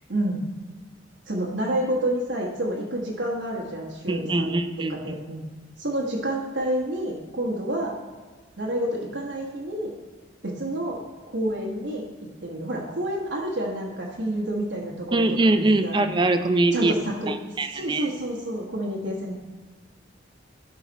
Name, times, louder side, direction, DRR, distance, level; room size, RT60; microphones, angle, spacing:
voice 1, 0.1-0.4 1.3-4.6 4.9-5.4 5.8-7.9 8.6-9.9 10.4-11.0 11.3-12.0 12.4-16.1 16.7-17.3 17.7-19.4, right 1 dB, 85° right, -4 dB, 1.3 m, -29 dB
voice 2, 4.1-5.0 15.1-16.9 17.3-18.1, right 2 dB, 25° right, 9 dB, 0.4 m, -23 dB
11.5 x 4.0 x 4.1 m, 1.4 s
head